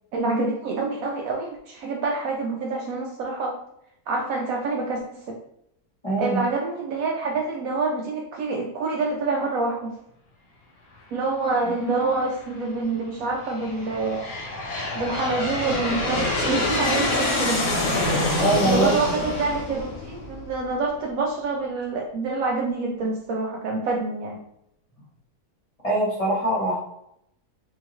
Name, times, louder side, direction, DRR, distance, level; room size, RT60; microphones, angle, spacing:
voice 1, 0.1-3.6 4.1-5.4 6.2-9.9 11.1-14.3 14.9-17.7 18.6-24.4, right 3 dB, 70° right, 0 dB, 0.9 m, -27 dB
voice 2, 6.0-6.4 18.4-19.0 25.8-26.8, right 1 dB, 25° left, -7 dB, 1.1 m, -22 dB
Aircraft, 11.9-12.5 13.2-20.7, left 2 dB, 55° left, 1.1 m, -26 dB
3.7 x 2.8 x 3.0 m, 0.74 s
omnidirectional pair, 1.7 m